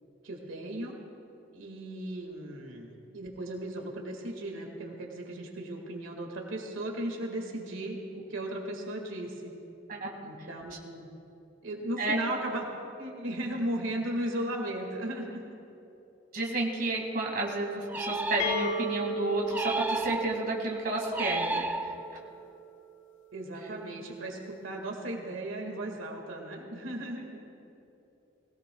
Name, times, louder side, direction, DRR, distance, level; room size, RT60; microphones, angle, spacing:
voice 1, 0.2-0.9 1.5-9.5 10.2-11.1 11.6-12.6 13.0-15.4 23.3-27.4, right 1 dB, 90° right, 1 dB, 1.9 m, -36 dB
voice 2, 16.3-21.9, right 2 dB, 45° right, -2 dB, 2.1 m, -31 dB
sound 1, 17.9-18.9 19.5-20.6 21.1-22.3, right 2 dB, 10° right, 0.4 m, -33 dB
sound 2, 18.4-22.1, equal, 70° left, 1.3 m, -35 dB
21.0 x 17.5 x 2.3 m, 2.9 s
head